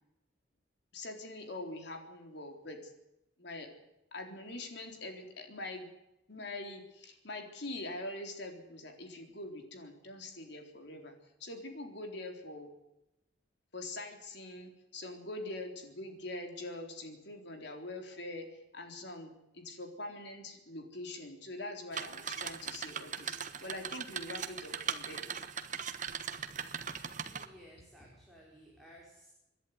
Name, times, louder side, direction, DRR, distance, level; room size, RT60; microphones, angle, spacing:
voice 1, 0.9-2.9 3.4-3.7 4.1-5.9 6.3-11.1 11.4-12.7 13.7-25.3, left 2 dB, 60° left, 4 dB, 4.1 m, -44 dB
sound 1, 21.9-27.5, right 7 dB, 40° right, 1.3 m, -39 dB
voice 2, 26.9-29.3, equal, ahead, -3 dB, 5.0 m, -57 dB
26.5 x 11.0 x 9.6 m, 0.90 s
head